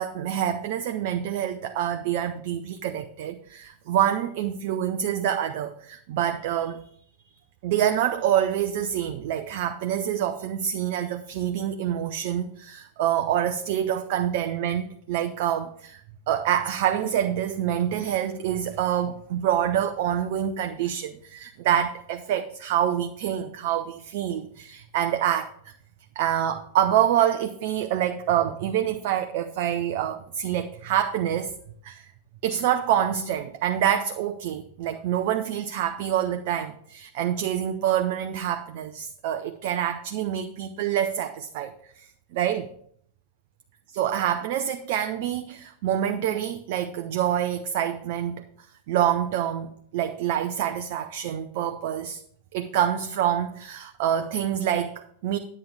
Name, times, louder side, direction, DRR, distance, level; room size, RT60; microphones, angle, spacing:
voice 1, 0.0-6.9 7.6-25.7 26.2-31.5 31.8-32.1 32.4-42.1 42.3-42.7 43.9-48.4 48.9-52.2 52.5-55.4, right 10 dB, 50° right, 7 dB, 0.6 m, -26 dB
10.0 x 8.5 x 3.4 m, 0.64 s
figure-of-eight pair, 90°, 0 cm